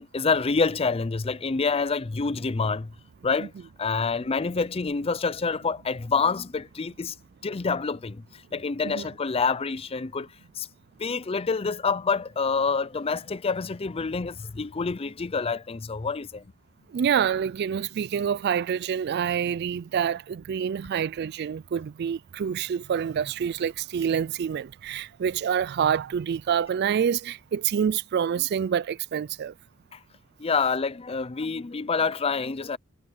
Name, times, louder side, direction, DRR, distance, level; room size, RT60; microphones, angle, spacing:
voice 1, 0.0-2.9 3.2-3.5 3.8-7.1 7.4-8.2 8.5-10.3 10.6-10.7 11.0-16.4 30.4-32.8, left 4 dB, 30° left, 0.5 m, -27 dB
voice 2, 16.9-29.5, right 8 dB, 50° right, 0.3 m, -27 dB
head